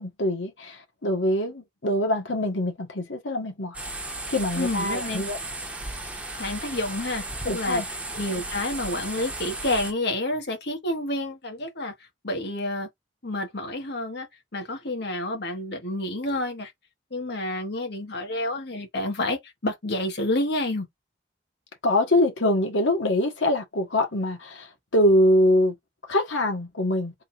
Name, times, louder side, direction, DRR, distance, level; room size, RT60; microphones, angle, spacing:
voice 1, 0.0-3.8 4.3-5.4 7.5-7.8 21.8-25.7 26.1-27.1, left 1 dB, 85° left, 1.5 m, -24 dB
sound 1, 3.7-9.9, right 2 dB, 5° right, 1.0 m, -35 dB
voice 2, 4.5-5.2 6.3-7.8 8.1-11.9 12.2-12.9 13.2-14.3 14.5-16.7 17.1-20.9, left 1 dB, 60° left, 1.5 m, -29 dB
3.8 x 2.5 x 4.3 m
head